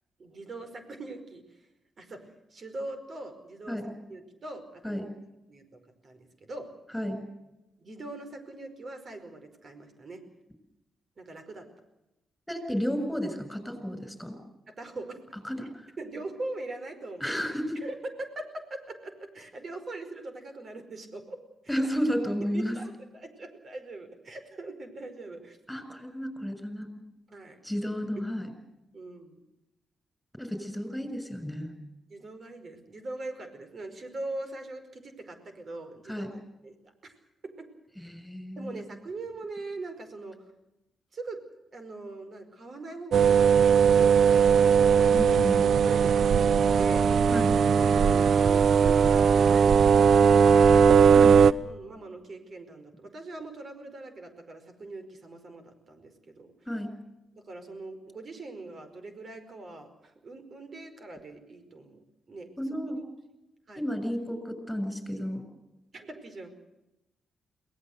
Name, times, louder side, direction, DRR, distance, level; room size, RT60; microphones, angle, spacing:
voice 1, 0.2-1.7 2.0-3.8 4.1-5.0 5.5-6.7 7.8-10.2 11.2-11.7 14.7-15.2 15.6-15.7 16.0-17.3 17.8-21.7 22.4-25.6 27.3-27.6 28.9-29.4 32.1-36.8 37.0-37.1 37.4-37.7 38.6-40.4 41.1-41.4 41.7-44.5 44.9-45.2 45.8-47.2 51.6-56.5 57.3-62.0 62.3-62.5 63.7-63.8 65.9-66.5, right 2 dB, 50° right, 7 dB, 4.9 m, -42 dB
voice 2, 12.5-14.4 15.4-15.9 17.2-17.8 21.7-22.8 25.7-26.9 27.6-28.5 30.4-31.7 36.1-36.3 38.0-38.8 45.1-45.6 47.3-47.6 51.1-51.4 56.7-56.9 62.6-63.0 63.8-65.4, equal, 5° left, 9 dB, 6.9 m, -32 dB
sound 1, 43.1-51.5, right 6 dB, 65° right, 0.8 m, -19 dB
23.0 x 18.0 x 8.0 m, 0.94 s
cardioid pair, 75°, 0 cm